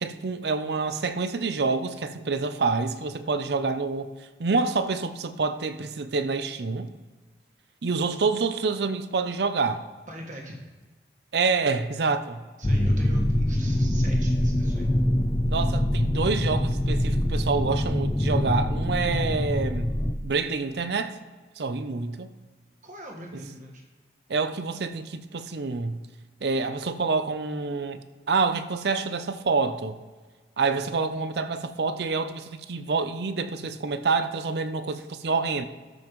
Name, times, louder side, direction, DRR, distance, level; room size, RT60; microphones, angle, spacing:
voice 1, 0.0-4.1 4.4-6.9 7.8-9.9 11.3-12.4 15.5-19.9 20.2-21.2 21.6-22.3 23.3-23.4 24.3-26.0 26.4-28.0 28.3-30.0 30.6-35.7, right 4 dB, 65° right, 0.5 m, -27 dB
voice 2, 10.1-10.6 12.6-14.9 22.8-23.8, right 1 dB, 45° right, 1.5 m, -41 dB
sound 1, 12.6-20.1, left 1 dB, 15° left, 0.4 m, -24 dB
13.0 x 5.4 x 3.1 m
head